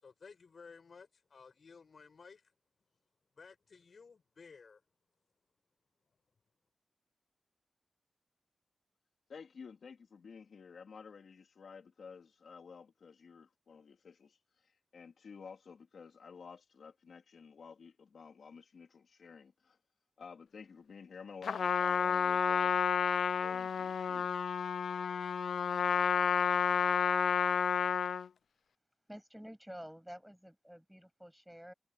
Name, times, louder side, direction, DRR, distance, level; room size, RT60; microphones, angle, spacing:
voice 1, 0.0-2.5 3.4-4.8, left 5 dB, 55° left, 7.3 m, -56 dB
voice 2, 9.3-19.8 20.2-22.8 23.2-24.4, left 5 dB, 70° left, 3.2 m, -52 dB
Trumpet, 21.4-28.3, left 7 dB, 90° left, 0.5 m, -30 dB
voice 3, 29.1-31.7, equal, ahead, 7.3 m, -50 dB
wide cardioid pair, 135°, 0 cm